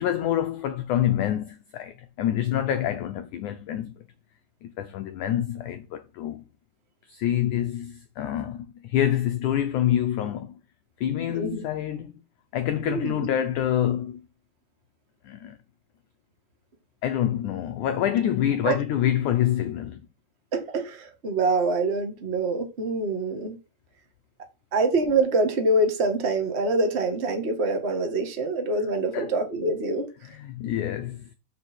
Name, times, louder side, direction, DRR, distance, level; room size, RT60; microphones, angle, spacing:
voice 1, 0.0-3.9 4.6-6.4 7.1-10.5 11.0-12.1 12.5-14.2 15.2-15.6 17.0-20.0 29.1-29.3 30.3-31.3, left 11 dB, 85° left, 1.7 m, -26 dB
voice 2, 11.3-11.6 12.9-13.1 18.6-18.7 20.5-23.6 24.7-30.1, right 2 dB, 75° right, 0.5 m, -25 dB
13.0 x 5.2 x 4.3 m
omnidirectional pair, 4.7 m